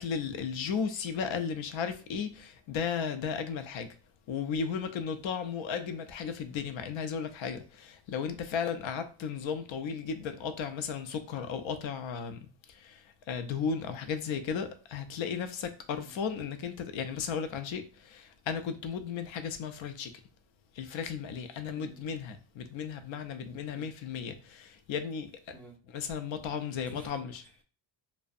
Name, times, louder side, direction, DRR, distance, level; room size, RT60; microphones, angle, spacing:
voice 1, 0.0-3.9 4.3-20.1 20.8-25.3 25.9-27.4, left 6 dB, 70° left, 0.5 m, -35 dB
voice 2, 25.5-25.8 26.9-27.6, right 1 dB, 5° left, 0.4 m, -53 dB
2.6 x 2.1 x 2.4 m
wide cardioid pair, 125°, 49 cm